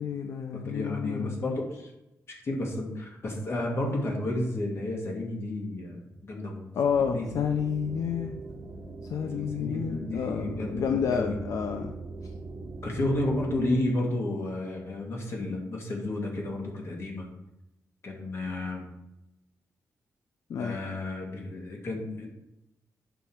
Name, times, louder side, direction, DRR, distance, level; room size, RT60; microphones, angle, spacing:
voice 1, 0.0-1.6 6.7-8.4 9.1-11.9 20.5-20.8, left 7 dB, 75° left, 5 dB, 0.6 m, -30 dB
voice 2, 0.5-1.9 2.4-6.7 7.1-7.3 9.3-11.4 12.8-17.3 18.0-18.9 20.6-22.3, left 1 dB, 50° left, 0 dB, 2.0 m, -32 dB
sound 1, 6.8-13.8, right 3 dB, 60° right, 1.3 m, -41 dB
9.1 x 5.5 x 4.5 m, 0.91 s
wide cardioid pair, 145°, 6 cm